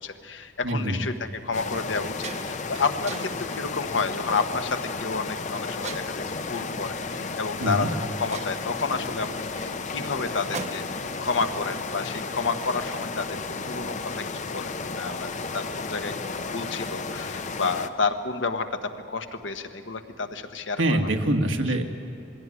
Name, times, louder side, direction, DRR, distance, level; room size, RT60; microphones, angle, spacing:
voice 1, 0.0-10.8 11.2-13.4 13.7-21.0, left 4 dB, 75° left, 7 dB, 1.3 m, -30 dB
voice 2, 0.6-1.0 7.6-7.9 20.8-21.9, right 1 dB, 85° right, 3 dB, 1.7 m, -24 dB
sound 1, 0.8-1.0 1.5-1.6 1.9-2.7 3.1-3.5 4.2-4.5 5.8-6.4 7.5-7.6 7.9-8.0 8.3-11.1, right 4 dB, 35° right, 0.8 m, -40 dB
sound 2, 1.5-17.9, left 4 dB, 40° left, 0.7 m, -33 dB
20.5 x 16.5 x 9.8 m, 2.7 s
head